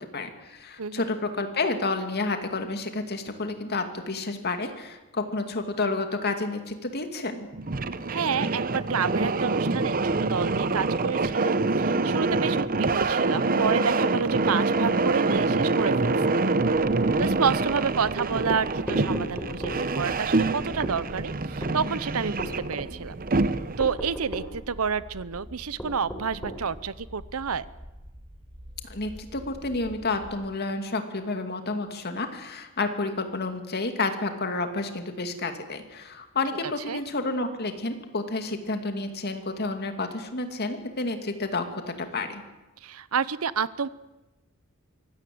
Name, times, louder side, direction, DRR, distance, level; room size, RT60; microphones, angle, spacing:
voice 1, 0.0-7.5 28.8-42.4, left 3 dB, 50° left, 6 dB, 2.5 m, -30 dB
voice 2, 0.8-1.1 8.1-16.4 17.2-23.2 23.8-27.7 36.9-37.0 42.8-43.9, right 6 dB, 80° right, 17 dB, 0.8 m, -29 dB
sound 1, 7.5-23.9, right 3 dB, 40° right, 0.9 m, -26 dB
sound 2, 16.6-30.4, equal, 25° right, 2.4 m, -46 dB
sound 3, 18.9-19.8 20.8-21.0 21.6-21.8 22.4-22.6 23.8-24.5 25.8-26.6, equal, 10° left, 4.0 m, -34 dB
24.0 x 17.0 x 7.9 m, 1.0 s
head